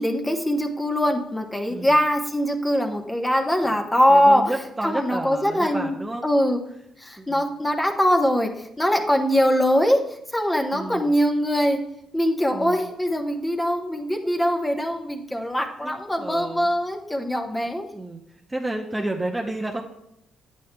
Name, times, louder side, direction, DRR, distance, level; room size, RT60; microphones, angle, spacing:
voice 1, 0.0-4.5 4.8-6.0 6.2-6.6 7.0-10.0 10.3-11.8 12.1-17.9, equal, 10° left, 3 dB, 0.9 m, -22 dB
voice 2, 4.1-6.2 7.2-7.4 10.7-11.1 12.5-12.9 15.8-15.9 16.2-16.7 17.9-18.2 18.5-19.8, right 1 dB, 15° right, 1 dB, 0.6 m, -31 dB
8.9 x 7.2 x 2.2 m, 0.78 s
cardioid pair, 90°, 0 cm